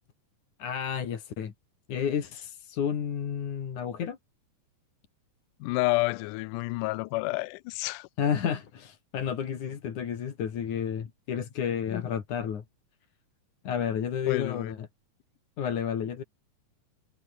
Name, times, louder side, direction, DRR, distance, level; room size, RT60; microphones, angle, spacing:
voice 1, 0.6-1.5 1.9-4.2 8.2-12.6 13.7-14.8 15.6-16.2, left 8 dB, 65° left, 3.8 m, -31 dB
voice 2, 5.6-8.1 11.9-12.0 14.3-14.8, left 22 dB, 80° left, 2.0 m, -29 dB
omnidirectional pair, 3.9 m